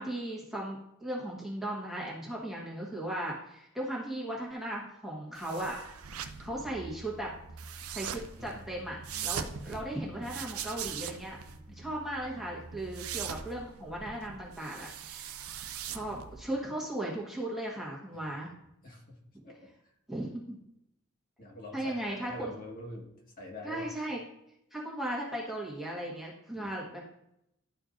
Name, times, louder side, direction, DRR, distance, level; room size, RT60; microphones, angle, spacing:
voice 1, 0.0-5.8 6.2-7.3 7.9-11.4 11.8-15.3 15.8-18.5 20.1-20.6 21.7-22.5 23.6-24.2 24.7-27.1, right 1 dB, ahead, -4 dB, 1.2 m, -37 dB
sound 1, 5.4-16.4, right 7 dB, 85° right, 0.5 m, -41 dB
voice 2, 9.1-9.9 11.7-11.9 16.0-16.1 18.1-18.5 18.8-19.2 19.4-19.5 19.8-19.9 21.4-23.1 23.4-23.8 26.5-26.7, left 1 dB, 40° left, -2 dB, 1.6 m, -46 dB
11.5 x 4.4 x 2.6 m, 0.81 s
head